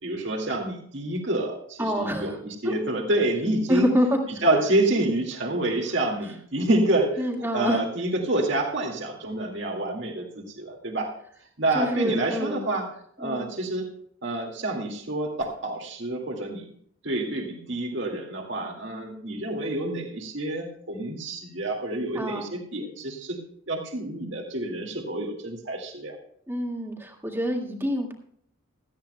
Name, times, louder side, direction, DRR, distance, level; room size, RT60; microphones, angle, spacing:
voice 1, 0.0-3.9 4.4-11.1 11.6-12.9 13.2-13.9 14.2-16.7 17.0-23.4 23.7-26.2, right 1 dB, 60° right, 2 dB, 2.1 m, -28 dB
voice 2, 1.8-2.4 2.6-2.7 3.7-4.2 7.2-7.8 11.7-12.7 13.2-13.5 22.1-22.5 26.5-28.1, equal, 10° right, 1 dB, 1.9 m, -26 dB
17.5 x 13.5 x 2.3 m, 0.65 s
head